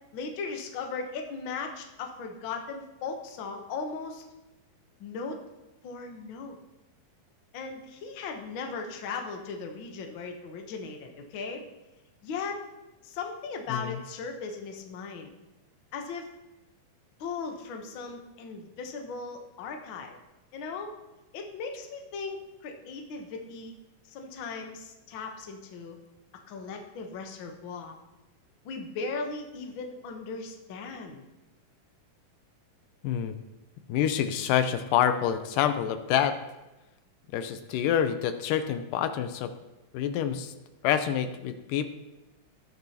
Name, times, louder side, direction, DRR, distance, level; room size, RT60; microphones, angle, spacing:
voice 1, 0.1-4.2 5.0-5.4 5.8-6.6 7.5-11.6 12.2-12.6 13.0-15.3 15.9-16.3 17.2-20.2 20.5-21.0 21.3-23.7 24.0-26.0 26.5-27.9 28.6-31.3, left 4 dB, 70° left, 3 dB, 1.1 m, -37 dB
voice 2, 33.0-33.4 33.9-36.4 37.3-39.5 39.9-40.5 40.8-41.9, left 9 dB, 90° left, 9 dB, 2.3 m, -27 dB
19.0 x 6.8 x 2.9 m, 1.0 s
omnidirectional pair, 3.8 m